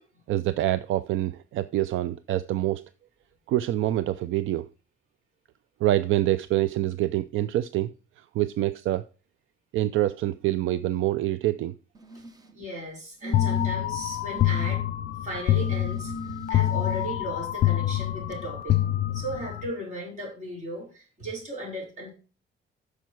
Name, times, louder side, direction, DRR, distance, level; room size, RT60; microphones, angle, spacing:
voice 1, 0.3-2.8 3.5-4.7 5.8-7.9 8.3-9.0 9.7-11.7, right 14 dB, 70° right, 14 dB, 0.4 m, -26 dB
sound 1, 11.9-12.5 13.2-13.9 14.3-14.8 15.5-17.1 18.3-18.4, equal, 20° right, 0.7 m, -37 dB
voice 2, 12.5-14.8 15.2-16.1 16.5-18.8 19.1-22.1, right 1 dB, 35° right, -2 dB, 4.5 m, -36 dB
sound 2, 13.3-19.7, left 13 dB, 50° left, 0.5 m, -26 dB
9.3 x 6.5 x 4.6 m, 0.35 s
cardioid pair, 175°, 21 cm